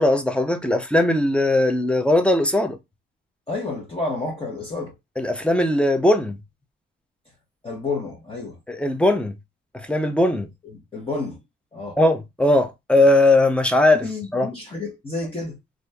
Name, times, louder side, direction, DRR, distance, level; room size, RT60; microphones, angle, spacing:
voice 1, 0.0-2.8 5.2-6.3 8.7-9.3 9.9-10.5 12.0-14.0 14.3-14.5, left 1 dB, 5° left, 0.6 m, -19 dB
voice 2, 3.5-4.9 7.6-8.6 10.3-11.4 11.7-12.0 13.9-15.6, left 3 dB, 30° left, 1.0 m, -30 dB
3.0 x 2.5 x 2.2 m
cardioid pair, 90°, 20 cm